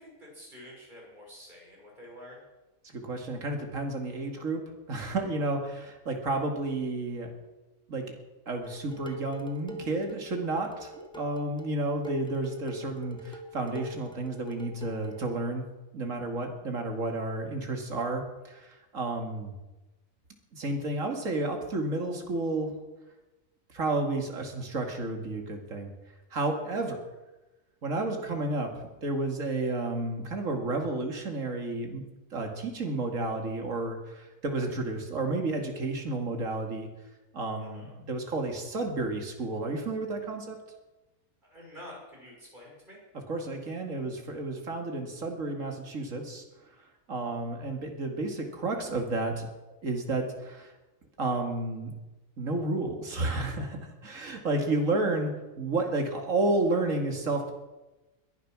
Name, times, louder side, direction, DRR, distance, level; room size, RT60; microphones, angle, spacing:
voice 1, 0.0-2.4 37.6-37.9 41.4-43.0, left 1 dB, 35° right, -2 dB, 6.4 m, -48 dB
voice 2, 2.8-7.3 7.9-8.0 8.5-15.7 15.9-19.5 20.5-22.7 23.7-25.9 26.3-27.0 27.8-32.0 32.3-36.9 37.3-40.6 43.3-49.5 49.8-50.7 51.2-51.9 52.4-55.3 55.6-57.5, right 2 dB, 70° right, 3 dB, 2.6 m, -31 dB
Dishes pots and pans, 8.6-15.2, equal, 5° left, 1.4 m, -45 dB
21.0 x 11.0 x 6.2 m, 1.1 s
omnidirectional pair, 1.4 m